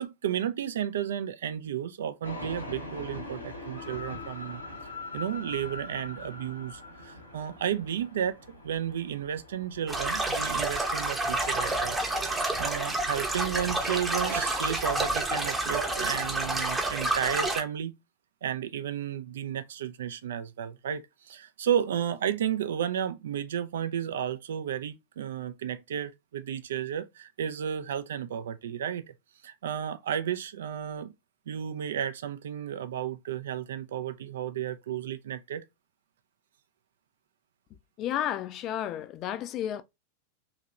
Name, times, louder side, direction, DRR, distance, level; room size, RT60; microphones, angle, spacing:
voice 1, 0.0-4.6 5.1-12.0 12.6-17.9 18.4-29.0 29.4-31.1 31.5-35.6, right 9 dB, 60° right, 0.3 m, -33 dB
sound 1, 2.2-16.9, left 3 dB, 80° left, 0.8 m, -44 dB
sound 2, 9.9-17.6, right 2 dB, 10° right, 0.7 m, -29 dB
voice 2, 38.0-39.8, left 11 dB, 35° left, 0.3 m, -32 dB
2.9 x 2.8 x 2.3 m
figure-of-eight pair, 90°, 0 cm